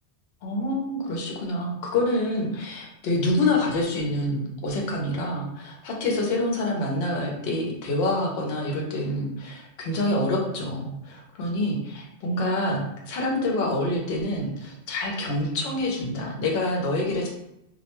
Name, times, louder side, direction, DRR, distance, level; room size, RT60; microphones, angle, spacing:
voice 1, 0.4-17.3, left 1 dB, 65° left, -1 dB, 0.8 m, -27 dB
2.3 x 2.1 x 2.9 m, 0.85 s
omnidirectional pair, 1.2 m